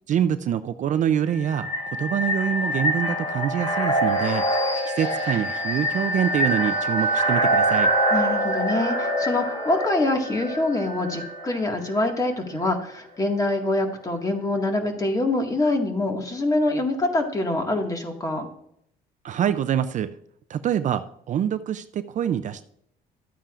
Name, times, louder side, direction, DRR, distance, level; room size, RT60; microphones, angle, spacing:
voice 1, 0.1-1.7 2.0-4.4 4.8-7.9 19.2-20.2 20.5-22.6, right 9 dB, 45° right, 11 dB, 0.5 m, -25 dB
sound 1, 1.3-12.1, right 1 dB, 35° left, 3.8 m, -25 dB
voice 2, 8.1-18.5, left 2 dB, 20° left, 3 dB, 1.8 m, -25 dB
12.5 x 8.8 x 2.5 m, 0.70 s
cardioid pair, 110°, 17 cm